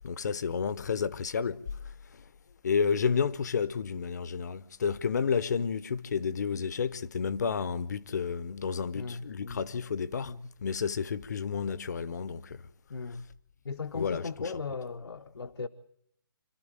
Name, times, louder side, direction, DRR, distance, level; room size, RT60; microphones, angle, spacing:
voice 1, 0.0-1.6 2.6-10.3 10.6-12.4 14.0-14.2, left 6 dB, 45° left, 0.8 m, -30 dB
voice 2, 8.9-9.8 10.2-10.5 12.9-13.3 13.6-15.7, left 4 dB, 85° left, 1.0 m, -37 dB
26.0 x 13.0 x 9.1 m
hypercardioid pair, 170°, 13 cm